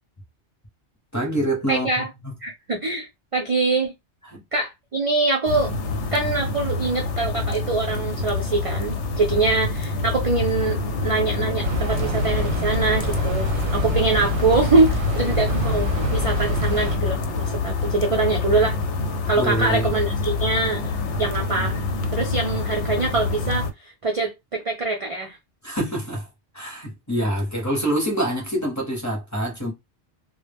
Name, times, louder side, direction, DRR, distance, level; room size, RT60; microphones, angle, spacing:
voice 1, 1.1-2.0 4.3-4.4 19.4-19.9 25.6-26.3 26.5-29.7, right 1 dB, 20° left, 0.6 m, -25 dB
voice 2, 1.7-2.1 2.4-3.9 4.5-5.7 6.1-18.8 19.3-20.8 21.2-21.8 22.1-25.4, right 3 dB, 65° right, 0.3 m, -24 dB
sound 1, 5.4-23.7, left 3 dB, 90° left, 0.9 m, -26 dB
sound 2, 11.6-17.0, right 1 dB, 85° right, 0.9 m, -26 dB
2.0 x 2.0 x 3.3 m
omnidirectional pair, 1.2 m